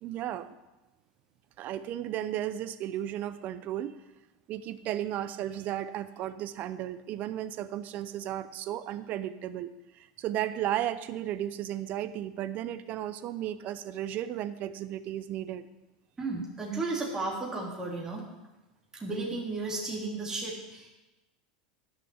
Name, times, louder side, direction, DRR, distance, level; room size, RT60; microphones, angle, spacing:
voice 1, 0.0-0.5 1.6-3.9 4.5-15.7, right 12 dB, 45° right, 13 dB, 0.7 m, -34 dB
voice 2, 16.2-18.2 18.9-20.9, right 3 dB, 15° right, -3 dB, 3.4 m, -34 dB
11.0 x 6.4 x 7.2 m, 1.0 s
hypercardioid pair, 100°, 4 cm